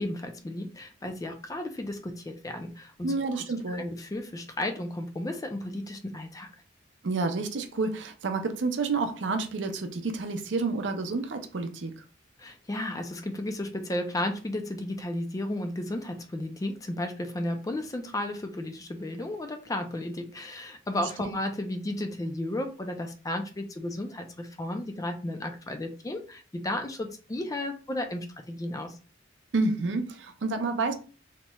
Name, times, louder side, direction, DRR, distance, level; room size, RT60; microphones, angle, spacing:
voice 1, 0.0-3.1 3.7-6.5 12.4-29.0, left 1 dB, 20° left, 0.4 m, -33 dB
voice 2, 3.0-3.9 7.0-11.9 21.2-21.3 29.5-30.9, right 3 dB, 65° right, 0.5 m, -29 dB
3.0 x 2.9 x 2.2 m
head